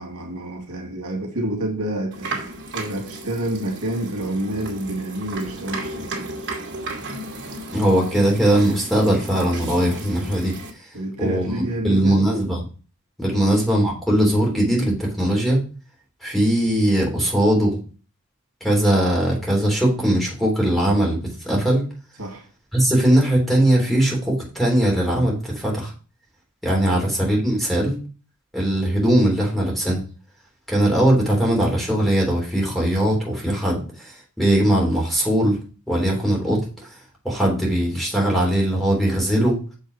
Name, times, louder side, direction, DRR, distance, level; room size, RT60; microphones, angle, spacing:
voice 1, 0.0-2.4 2.7-6.3 10.9-12.2 13.3-13.5 22.2-22.5 26.9-27.0, right 1 dB, 85° right, 2.3 m, -28 dB
sound 1, 2.1-10.7, right 2 dB, 60° right, 2.5 m, -34 dB
voice 2, 7.7-10.5 11.2-12.6 13.2-15.6 16.2-17.8 18.6-21.8 22.7-25.9 26.6-28.0 28.5-30.0 30.7-35.6 35.9-36.6 37.2-39.6, right 1 dB, ahead, 3.3 m, -20 dB
7.0 x 5.5 x 4.9 m
head